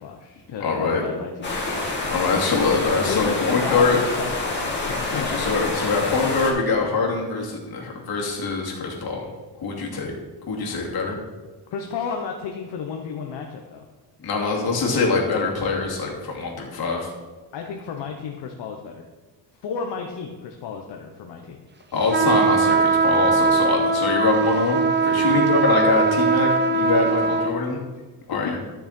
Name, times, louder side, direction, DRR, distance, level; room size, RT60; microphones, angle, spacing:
voice 1, 0.0-1.6 3.0-5.7 11.7-13.9 17.5-19.0 19.5-21.6 25.1-25.4 28.4-28.5, left 6 dB, 75° left, 2 dB, 1.1 m, -32 dB
voice 2, 0.6-1.0 2.1-4.0 5.1-9.2 9.6-10.1 10.5-11.2 14.2-17.1 21.9-27.8 28.3-28.6, left 4 dB, 60° left, -2 dB, 2.8 m, -24 dB
River Frome, 1.4-6.5, left 3 dB, 25° left, 2.8 m, -27 dB
sound 1, 22.1-27.5, right 4 dB, 25° right, 0.9 m, -20 dB
13.5 x 6.6 x 4.4 m, 1.3 s
cardioid pair, 115°, 43 cm